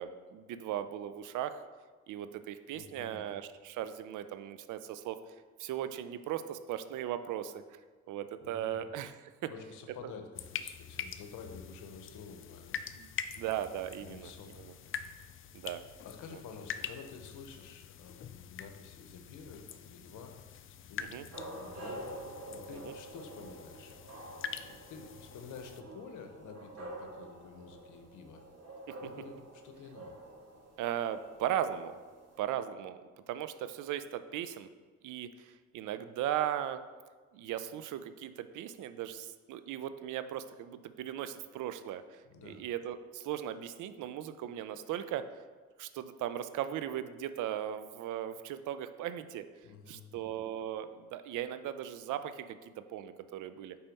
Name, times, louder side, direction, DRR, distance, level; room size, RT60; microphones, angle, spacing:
voice 1, 0.0-1.6 2.1-5.2 5.6-7.6 8.1-9.5 10.0-10.1 13.0-13.1 13.4-14.3 14.6-14.7 15.5-15.8 16.3-16.4 21.1-21.2 22.8-22.9 30.8-31.9 32.4-33.0 33.3-34.7 35.0-36.8 37.3-45.2 45.8-49.4 49.9-53.8, right 11 dB, 80° right, 11 dB, 0.5 m, -37 dB
voice 2, 2.7-3.2 8.4-8.8 9.5-13.5 14.0-15.0 16.0-20.4 20.8-24.0 24.6-28.4 29.0-30.1 42.3-42.6 49.6-50.4, left 5 dB, 80° left, 5 dB, 0.9 m, -50 dB
sound 1, 10.3-25.8, left 8 dB, 45° left, 0.4 m, -45 dB
sound 2, 21.3-32.4, right 1 dB, 55° right, 1.9 m, -48 dB
5.5 x 4.2 x 5.3 m, 1.5 s
cardioid pair, 90°, 30 cm